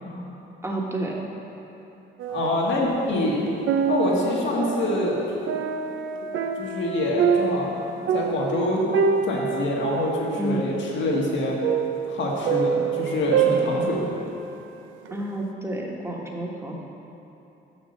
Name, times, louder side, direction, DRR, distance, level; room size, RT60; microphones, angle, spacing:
voice 1, 0.6-1.2 10.4-10.6 15.1-16.7, right 1 dB, 15° right, -1 dB, 1.3 m, -30 dB
sound 1, 2.2-3.1 3.5-14.6 15.0-15.1, right 6 dB, 80° right, 0.6 m, -26 dB
voice 2, 2.3-3.5 3.9-5.2 6.6-7.8 8.1-8.9 9.3-11.6 12.1-14.3, left 1 dB, 70° left, -3 dB, 1.8 m, -25 dB
6.4 x 6.3 x 6.6 m, 3.0 s
cardioid pair, 90°, 20 cm